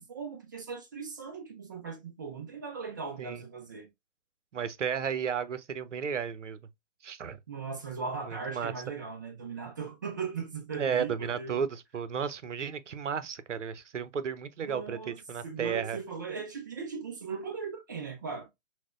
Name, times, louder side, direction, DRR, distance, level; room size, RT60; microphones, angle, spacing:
voice 1, 0.0-3.9 7.5-11.6 14.6-15.2 15.4-18.5, right 5 dB, 15° right, 0.4 m, -38 dB
voice 2, 4.5-6.6 7.0-7.4 8.3-8.7 10.7-16.0, right 7 dB, 80° right, 0.7 m, -33 dB
5.9 x 2.1 x 2.3 m
figure-of-eight pair, 135°, 37 cm